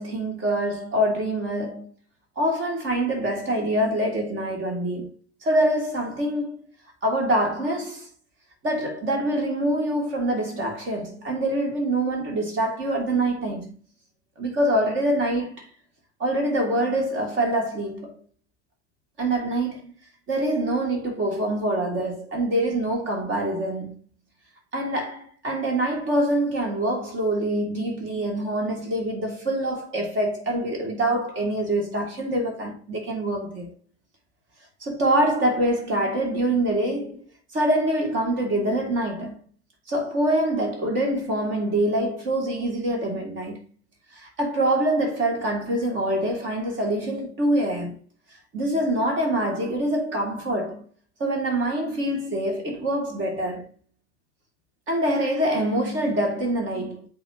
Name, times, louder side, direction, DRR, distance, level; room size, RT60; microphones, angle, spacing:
voice 1, 0.0-1.9 2.4-6.6 7.0-8.1 8.6-13.7 14.4-15.7 16.2-18.2 19.2-19.9 20.3-24.0 24.7-33.7 34.8-37.2 37.5-39.4 39.9-43.6 44.1-48.0 48.5-50.8 51.2-53.7 54.9-57.1, right 1 dB, 35° right, 3.1 m, -25 dB
8.7 x 3.9 x 2.9 m
figure-of-eight pair, 85°, 33 cm